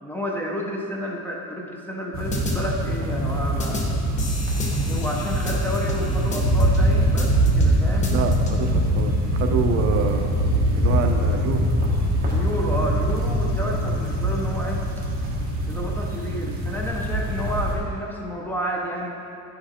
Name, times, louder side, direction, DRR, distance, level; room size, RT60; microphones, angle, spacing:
voice 1, 0.0-3.8 4.8-8.1 12.2-14.8 15.7-19.2, equal, 5° left, -2 dB, 0.5 m, -30 dB
sound 1, 2.1-17.7, equal, 25° right, 1.3 m, -23 dB
sound 2, 2.3-2.6 3.6-3.8 4.2-6.8 7.0-7.8 8.0-8.8, equal, 20° left, 0.9 m, -28 dB
voice 2, 8.1-10.3 10.7-11.7, right 6 dB, 45° right, 4 dB, 0.5 m, -27 dB
10.0 x 5.9 x 4.2 m, 2.9 s
cardioid pair, 170°, 34 cm